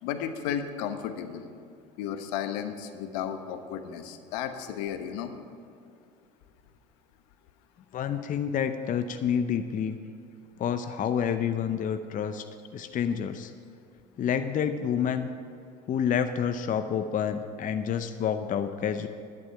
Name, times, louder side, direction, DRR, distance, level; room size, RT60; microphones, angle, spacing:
voice 1, 0.0-1.5 2.0-5.3, left 9 dB, 70° left, 8 dB, 1.0 m, -33 dB
voice 2, 7.9-10.0 10.6-12.4 12.7-13.5 14.2-15.3 15.9-19.1, left 8 dB, 40° left, 9 dB, 0.7 m, -28 dB
11.0 x 10.5 x 5.8 m, 2.5 s
hypercardioid pair, 70°, 21 cm